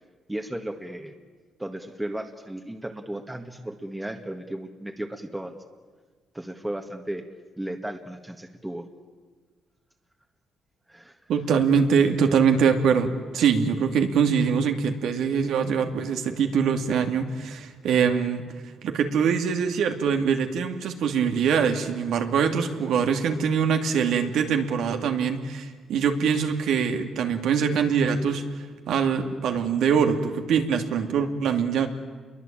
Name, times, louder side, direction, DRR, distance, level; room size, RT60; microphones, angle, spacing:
voice 1, 0.3-1.2 1.6-5.6 6.3-7.3 7.6-8.9 10.9-11.2, right 1 dB, 10° right, 3 dB, 1.8 m, -35 dB
voice 2, 11.3-18.5 18.8-28.4 28.9-31.9, right 6 dB, 80° right, 5 dB, 2.6 m, -23 dB
28.5 x 22.5 x 8.9 m, 1.4 s
cardioid pair, 90°, 0 cm